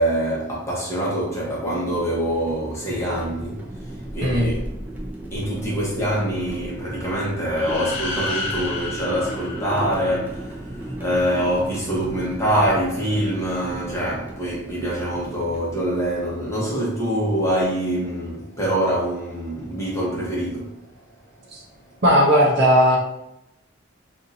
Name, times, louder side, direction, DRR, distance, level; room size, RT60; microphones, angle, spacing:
voice 1, 0.0-4.7 5.3-20.7, right 1 dB, 15° left, 1.0 m, -25 dB
sound 1, 1.3-16.3, right 1 dB, 10° right, 0.5 m, -36 dB
sound 2, 7.5-10.4, left 3 dB, 65° left, 0.5 m, -31 dB
voice 2, 22.0-23.0, equal, 55° right, 0.8 m, -16 dB
2.8 x 2.5 x 3.9 m
head